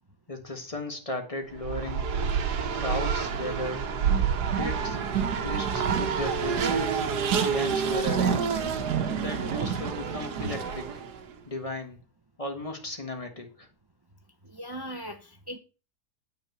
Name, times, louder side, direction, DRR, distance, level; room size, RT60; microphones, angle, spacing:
voice 1, 0.3-2.1 2.7-3.9 4.5-5.0 5.4-7.0 7.4-8.6 9.2-11.0 11.5-12.0 12.4-13.7, left 2 dB, 20° left, 4 dB, 1.6 m, -35 dB
Race car auto racing, 1.5-11.2, right 6 dB, 75° right, 1.5 m, -28 dB
voice 2, 14.4-15.6, equal, 40° right, 6 dB, 0.3 m, -39 dB
9.2 x 4.6 x 6.7 m, 0.34 s
omnidirectional pair, 1.7 m